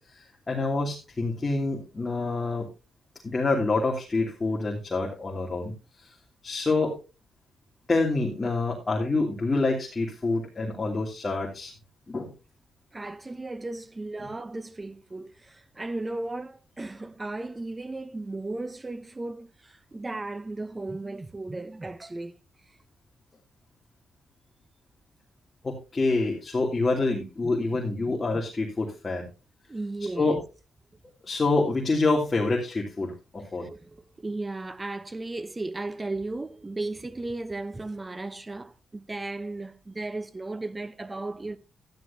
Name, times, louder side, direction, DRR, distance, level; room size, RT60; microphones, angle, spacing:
voice 1, 0.2-2.7 3.2-5.7 6.4-6.9 7.9-11.7 12.1-12.3 14.2-14.3 25.6-29.3 30.2-30.3 31.2-33.7, left 3 dB, 25° left, 3.0 m, -27 dB
voice 2, 12.9-22.3 27.4-27.8 28.1-28.4 29.7-30.4 33.6-41.6, right 2 dB, 20° right, 0.9 m, -35 dB
13.5 x 11.5 x 2.9 m
cardioid pair, 100°, 0 cm